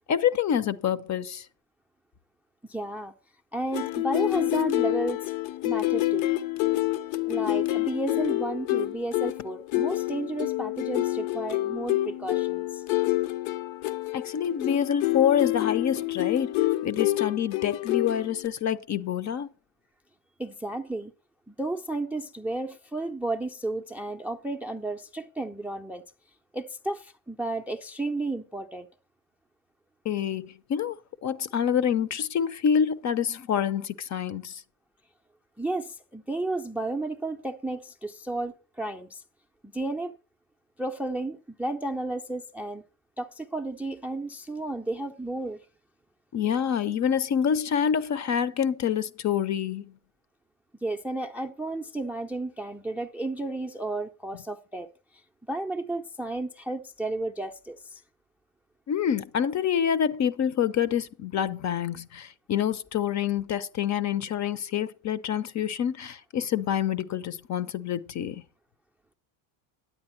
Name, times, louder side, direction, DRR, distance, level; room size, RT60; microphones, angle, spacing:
voice 1, 0.0-1.5 14.1-16.6 16.8-19.5 30.0-34.6 46.3-49.9 58.9-68.4, left 8 dB, 35° left, 0.7 m, -27 dB
voice 2, 2.7-3.1 3.5-5.3 5.6-6.3 7.3-12.8 20.4-21.1 21.5-26.0 26.5-28.9 35.6-39.2 39.6-40.2 40.8-42.8 43.2-45.6 50.8-54.9 55.5-58.0, right 2 dB, 5° right, 0.5 m, -32 dB
sound 1, 3.7-18.5, left 18 dB, 65° left, 0.9 m, -28 dB
9.9 x 8.5 x 4.4 m
supercardioid pair, 90°, 48 cm